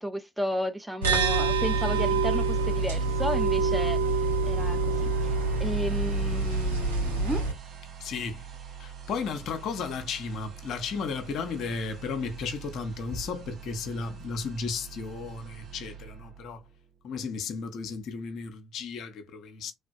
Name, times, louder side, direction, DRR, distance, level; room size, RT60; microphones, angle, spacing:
voice 1, 0.0-7.5, equal, 10° right, 0.6 m, -33 dB
sound 1, 1.0-7.5, right 3 dB, 90° right, 0.6 m, -26 dB
sound 2, 4.0-17.1, right 8 dB, 55° right, 0.8 m, -45 dB
voice 2, 8.0-8.5 8.8-16.6 17.0-19.7, left 5 dB, 60° left, 0.7 m, -34 dB
3.4 x 2.2 x 2.6 m
hypercardioid pair, 50°, 0 cm